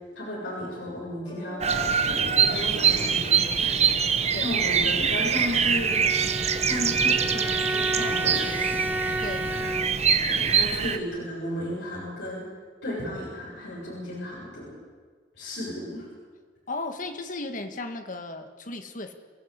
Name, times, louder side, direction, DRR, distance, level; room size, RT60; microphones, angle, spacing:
voice 1, 0.2-6.0 6.6-8.8 10.3-12.5 12.8-14.8 15.3-16.1, left 1 dB, 85° left, -5 dB, 7.1 m, -34 dB
sound 1, 1.2-3.9, left 3 dB, 25° left, 7.5 m, -47 dB
Bird vocalization bird call bird song, 1.6-11.0, right 6 dB, 40° right, 1.2 m, -24 dB
Bowed string instrument, 5.7-10.2, right 1 dB, 10° right, 0.8 m, -31 dB
voice 2, 9.2-9.5 16.7-19.1, left 2 dB, 45° left, 7 dB, 1.9 m, -35 dB
28.5 x 15.5 x 8.3 m, 1.5 s
head